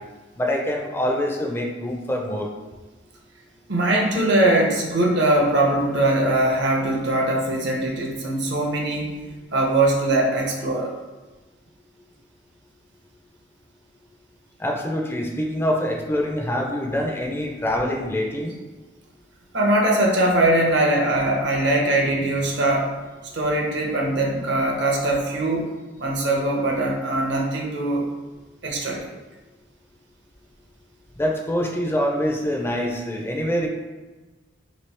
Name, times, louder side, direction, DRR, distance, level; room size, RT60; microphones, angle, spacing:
voice 1, 0.4-2.5 14.6-18.5 31.2-33.7, equal, 10° left, 1 dB, 0.4 m, -25 dB
voice 2, 3.7-9.2 9.5-10.9 19.5-22.9 23.3-25.7 26.0-28.1 28.6-29.1, right 1 dB, 60° right, -1 dB, 0.6 m, -21 dB
3.0 x 2.7 x 3.2 m, 1.2 s
head